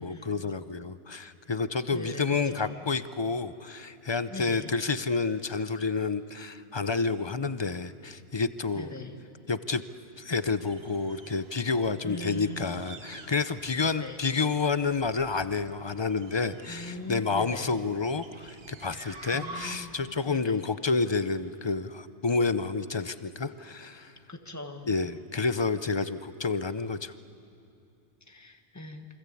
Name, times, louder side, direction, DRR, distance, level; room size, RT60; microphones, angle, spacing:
voice 1, 0.0-8.9 9.5-9.8 10.2-24.1 24.9-27.1, left 4 dB, 30° left, 12 dB, 0.6 m, -29 dB
voice 2, 1.9-2.8 4.3-4.7 8.7-9.2 12.0-12.8 13.8-14.2 16.7-17.8 19.3-19.9 20.2-20.6 24.3-24.9 28.3-29.1, left 2 dB, 15° left, 5 dB, 1.5 m, -41 dB
sound 1, 10.2-20.1, right 3 dB, 60° right, 1.6 m, -48 dB
28.0 x 24.5 x 8.5 m, 2.8 s
omnidirectional pair, 1.2 m